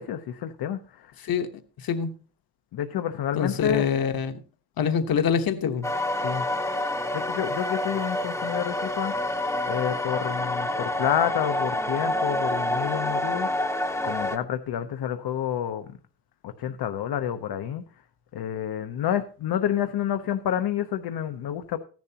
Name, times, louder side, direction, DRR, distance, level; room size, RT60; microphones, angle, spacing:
voice 1, 0.0-1.1 2.7-3.9 6.2-6.4 7.1-13.7 14.0-15.9 16.4-17.8 18.3-21.8, left 10 dB, 85° left, 0.8 m, -29 dB
voice 2, 3.4-4.4 4.8-5.9, left 7 dB, 70° left, 1.2 m, -25 dB
sound 1, 5.8-14.4, left 1 dB, 10° left, 0.6 m, -28 dB
14.5 x 10.5 x 2.9 m
wide cardioid pair, 145°, 37 cm